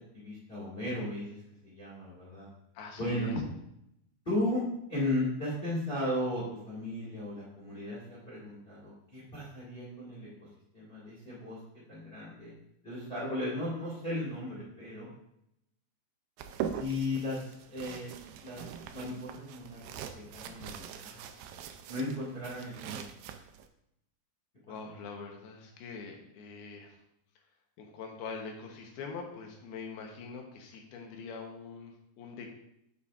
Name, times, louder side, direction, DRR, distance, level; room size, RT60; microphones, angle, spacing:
voice 1, 0.1-1.4 1.6-2.5 3.0-3.3 4.2-4.6 4.9-10.3 10.7-11.6 11.9-12.5 12.8-15.1 16.7-18.1 18.4-18.7 18.9-21.2 21.9-23.0, left 1 dB, 25° left, -7 dB, 1.3 m, -35 dB
voice 2, 2.7-3.4 24.7-27.0 27.8-32.5, left 5 dB, 80° left, 2 dB, 2.9 m, -43 dB
sound 1, 16.4-23.7, right 8 dB, 80° right, 2.2 m, -42 dB
8.1 x 7.3 x 2.5 m, 0.80 s
omnidirectional pair, 4.5 m